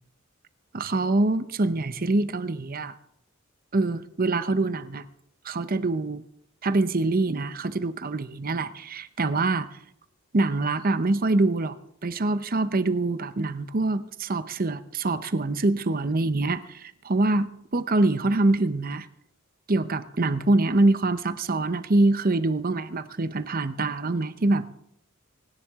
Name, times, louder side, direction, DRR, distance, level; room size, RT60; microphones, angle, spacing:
voice 1, 0.7-2.9 3.7-5.0 5.4-6.2 6.6-9.7 10.3-11.8 12.0-19.1 19.7-24.7, right 2 dB, 45° right, 13 dB, 0.8 m, -25 dB
27.0 x 10.5 x 3.6 m, 0.73 s
head